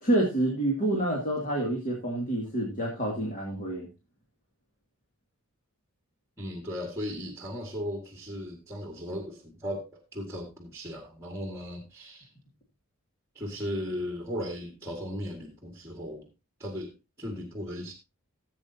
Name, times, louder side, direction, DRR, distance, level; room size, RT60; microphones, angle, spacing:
voice 1, 0.0-3.9, right 1 dB, 40° left, -2 dB, 2.5 m, -28 dB
voice 2, 6.4-12.3 13.3-16.3 16.6-16.9 17.2-17.9, equal, 15° right, 3 dB, 2.0 m, -36 dB
16.0 x 8.0 x 2.8 m, 0.25 s
head